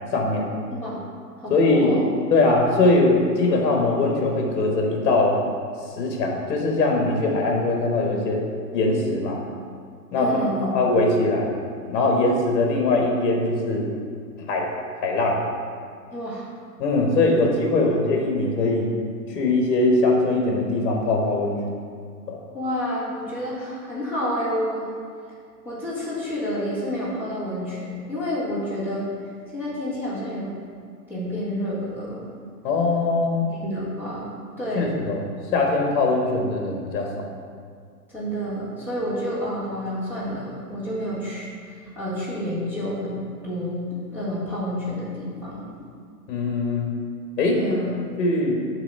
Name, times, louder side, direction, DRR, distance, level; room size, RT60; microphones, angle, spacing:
voice 1, 0.1-0.5 1.5-1.9 2.3-5.4 6.0-8.4 8.7-9.4 10.1-10.4 10.7-11.5 11.9-13.9 14.5-14.7 15.0-15.4 16.8-18.9 19.3-21.6 22.3-22.4 32.6-33.5 34.7-35.3 35.5-37.1 46.3-46.9 47.4-48.6, left 2 dB, 45° left, 0 dB, 1.4 m, -21 dB
voice 2, 1.4-2.0 10.2-10.7 16.1-16.5 17.8-17.9 22.5-24.9 25.6-29.1 29.5-30.5 31.1-32.3 33.4-34.3 34.6-34.9 38.1-45.8 47.5-47.9, equal, 5° right, -12 dB, 1.7 m, -29 dB
8.2 x 3.3 x 5.5 m, 2.1 s
hypercardioid pair, 140°, 49 cm